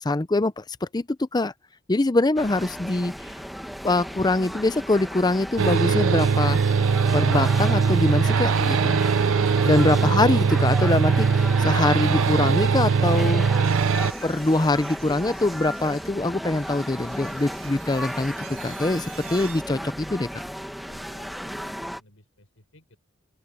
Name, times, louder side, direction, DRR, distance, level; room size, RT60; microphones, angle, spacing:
voice 1, 0.0-1.5 1.9-3.1 3.8-6.8 7.1-9.0 9.6-13.5 14.2-18.3 18.6-20.3, left 2 dB, 20° left, 0.5 m, -23 dB
sound 1, 2.4-22.0, equal, ahead, 1.4 m, -35 dB
sound 2, 5.6-14.1, right 5 dB, 70° right, 0.5 m, -21 dB
sound 3, 13.6-19.6, right 10 dB, 90° right, 1.9 m, -46 dB
voice 2, 20.9-23.0, left 1 dB, 80° left, 5.6 m, -54 dB
open air
head